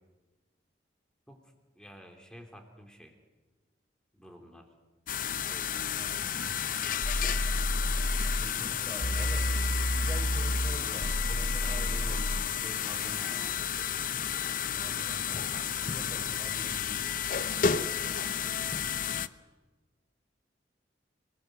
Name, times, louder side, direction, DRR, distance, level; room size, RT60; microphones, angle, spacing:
voice 1, 1.7-3.2 4.1-4.7 5.4-6.0 8.5-8.9 11.6-12.3 12.6-13.9 17.4-18.7, equal, 5° left, 4 dB, 3.4 m, -50 dB
sound 1, 5.1-19.3, left 8 dB, 50° left, 0.8 m, -32 dB
voice 2, 5.9-6.6 8.4-9.5 9.9-12.5 14.7-17.0, equal, 15° right, 1 dB, 6.2 m, -46 dB
sound 2, 7.0-8.5 9.0-12.5, equal, 30° left, 1.6 m, -30 dB
29.0 x 20.5 x 8.0 m, 1.2 s
head